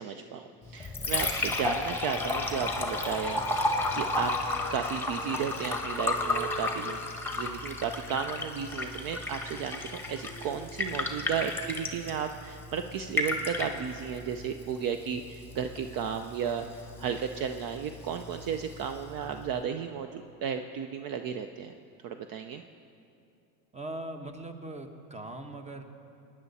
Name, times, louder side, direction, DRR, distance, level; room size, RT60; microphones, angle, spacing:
voice 1, 0.0-4.3 4.7-7.0 7.3-21.7 22.0-22.6, right 7 dB, 45° right, 8 dB, 0.6 m, -34 dB
Liquid, 0.6-19.6, left 2 dB, 5° left, 1.6 m, -33 dB
voice 2, 23.7-25.8, right 1 dB, 15° right, 7 dB, 1.2 m, -40 dB
19.0 x 10.0 x 4.2 m, 2.6 s
hypercardioid pair, 90°, 49 cm